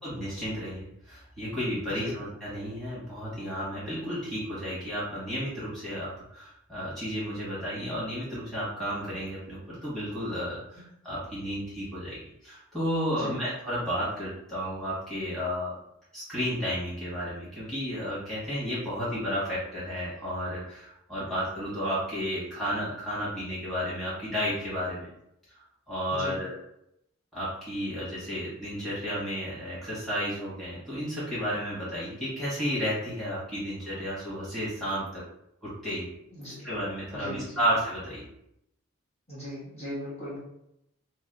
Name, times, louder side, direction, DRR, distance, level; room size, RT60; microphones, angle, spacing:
voice 1, 0.0-15.7 16.1-25.1 25.9-26.6 27.3-35.2 35.6-36.1 36.6-38.2, equal, ahead, -11 dB, 1.4 m, -32 dB
voice 2, 13.1-13.4 26.1-26.4 36.3-36.7 37.1-37.5 39.3-40.4, equal, 30° left, -9 dB, 1.4 m, -38 dB
4.0 x 2.0 x 3.9 m, 0.78 s
head